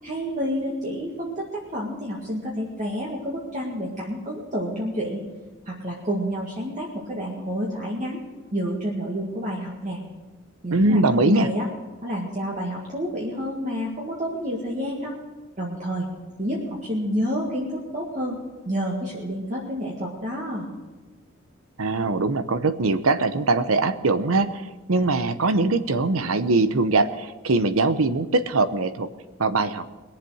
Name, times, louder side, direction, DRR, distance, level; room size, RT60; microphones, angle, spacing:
voice 1, 0.0-5.2 5.6-8.2 8.5-10.0 10.6-11.7 12.0-15.1 15.6-16.1 16.4-18.4 18.7-20.7, equal, 35° right, -4 dB, 1.9 m, -29 dB
voice 2, 10.7-11.5 21.8-29.1 29.4-29.9, right 3 dB, 75° right, 12 dB, 0.8 m, -22 dB
21.0 x 7.5 x 6.3 m, 1.3 s
head